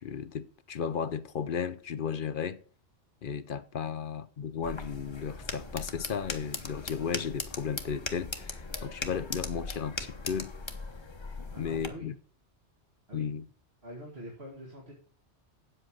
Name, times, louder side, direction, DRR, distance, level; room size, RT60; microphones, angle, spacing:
voice 1, 0.0-2.6 3.2-10.5 11.6-12.2 13.1-13.4, left 7 dB, 55° left, 0.7 m, -34 dB
sound 1, 4.6-11.9, left 3 dB, 25° left, 1.0 m, -39 dB
voice 2, 11.5-12.1 13.1-13.3 13.8-14.9, equal, 60° right, 2.3 m, -45 dB
8.9 x 7.9 x 6.2 m
omnidirectional pair, 1.2 m